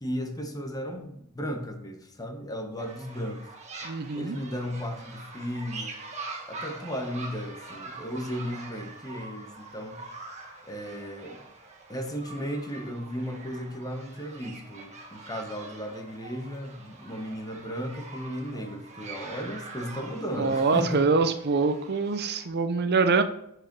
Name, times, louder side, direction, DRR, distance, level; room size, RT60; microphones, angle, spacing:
voice 1, 0.0-3.4 4.1-6.0 6.5-10.0 10.6-11.4 11.9-21.3, equal, 15° left, 4 dB, 1.2 m, -35 dB
sound 1, 2.8-22.5, right 3 dB, 30° right, 1.6 m, -44 dB
voice 2, 3.8-4.4 20.4-23.2, right 4 dB, 50° right, 9 dB, 0.6 m, -24 dB
10.0 x 5.0 x 4.7 m, 0.76 s
head